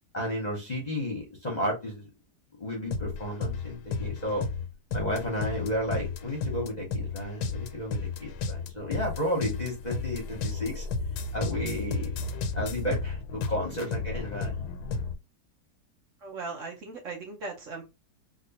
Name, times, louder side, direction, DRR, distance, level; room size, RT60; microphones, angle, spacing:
voice 1, 0.1-2.1 2.6-4.5 4.9-10.9 11.3-12.2 12.5-14.7, equal, 30° left, -1 dB, 0.9 m, -32 dB
sound 1, 2.9-15.2, left 4 dB, 85° left, 1.2 m, -33 dB
voice 2, 16.2-17.8, right 3 dB, 55° right, 1 dB, 1.2 m, -38 dB
3.6 x 2.5 x 2.8 m, 0.24 s
omnidirectional pair, 1.7 m